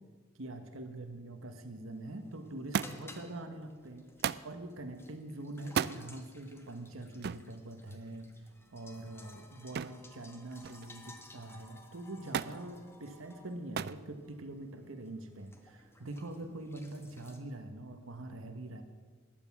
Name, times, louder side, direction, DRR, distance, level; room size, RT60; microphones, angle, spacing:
voice 1, 0.3-8.3 8.7-18.8, right 2 dB, 75° right, 6 dB, 1.2 m, -44 dB
sound 1, 1.9-17.4, left 2 dB, 10° left, 1.2 m, -58 dB
Thump thud, 2.7-3.2 4.2-4.5 5.6-6.0 7.2-7.5 9.8-10.1 10.4-11.0 12.3-12.6 13.8-14.0 15.0-15.5 16.4-16.5, right 7 dB, 50° right, 0.4 m, -35 dB
14.5 x 10.5 x 6.0 m, 1.4 s
head